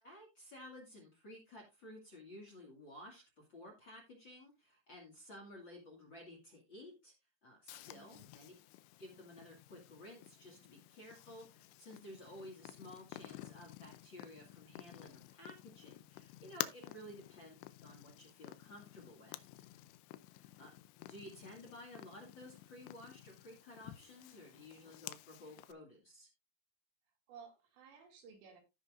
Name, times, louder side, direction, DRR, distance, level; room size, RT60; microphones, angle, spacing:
voice 1, 0.0-7.1 7.4-8.5 9.0-19.7 20.3-20.7 21.0-26.3, left 1 dB, 40° left, 1.8 m, -54 dB
Purr, 7.7-25.7, left 16 dB, 80° left, 2.6 m, -51 dB
voice 2, 7.9-8.3 16.8-17.1 27.3-28.6, right 6 dB, 75° right, 4.3 m, -57 dB
16.0 x 5.4 x 2.5 m
omnidirectional pair, 5.2 m